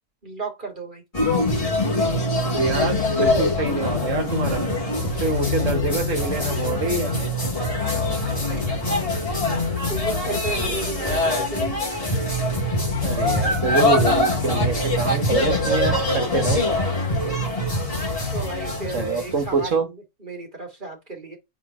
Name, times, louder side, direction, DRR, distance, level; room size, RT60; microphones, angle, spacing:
voice 1, 0.2-1.0 5.1-5.7 7.7-9.1 9.9-11.8 17.0-17.6 18.3-21.4, right 2 dB, 35° right, 2.8 m, -35 dB
sound 1, 1.1-19.7, left 2 dB, 25° left, 2.4 m, -23 dB
voice 2, 2.5-4.6 5.2-7.2 10.3-10.4 13.0-16.6 18.9-19.9, right 4 dB, 60° right, 1.8 m, -25 dB
5.0 x 4.4 x 5.0 m
omnidirectional pair, 1.5 m